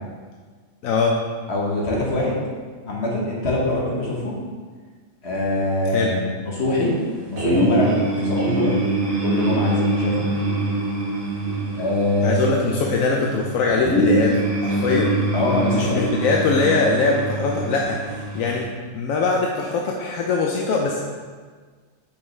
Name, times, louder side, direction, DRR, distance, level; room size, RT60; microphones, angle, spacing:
voice 1, 0.8-1.2 5.9-6.1 12.2-15.1 15.7-18.7 18.9-21.0, left 4 dB, 80° left, 0 dB, 1.0 m, -22 dB
voice 2, 1.5-2.4 2.8-4.4 5.2-6.9 7.3-8.7 9.2-10.2 11.8-12.6 15.3-16.1, left 1 dB, 50° left, -4 dB, 1.6 m, -23 dB
sound 1, 7.4-18.6, right 1 dB, 55° right, 1.4 m, -24 dB
6.6 x 5.7 x 3.2 m, 1.5 s
omnidirectional pair, 1.4 m